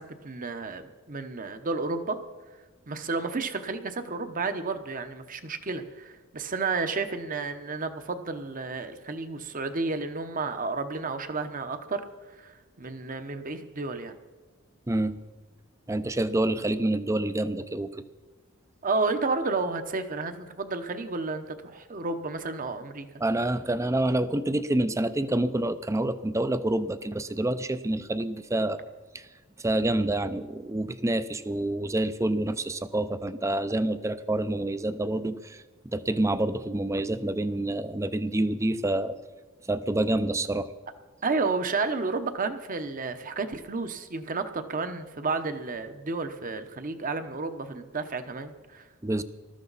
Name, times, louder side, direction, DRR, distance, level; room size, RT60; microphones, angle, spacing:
voice 1, 0.0-2.2 2.9-12.0 12.4-12.5 12.8-14.1 18.8-23.1 41.2-48.8, right 3 dB, 40° right, 9 dB, 0.9 m, -31 dB
voice 2, 15.9-18.0 23.2-28.9 29.1-29.2 29.6-39.2 39.7-40.7 49.0-49.2, right 1 dB, 15° right, 13 dB, 0.5 m, -27 dB
20.0 x 13.0 x 4.1 m, 1.3 s
head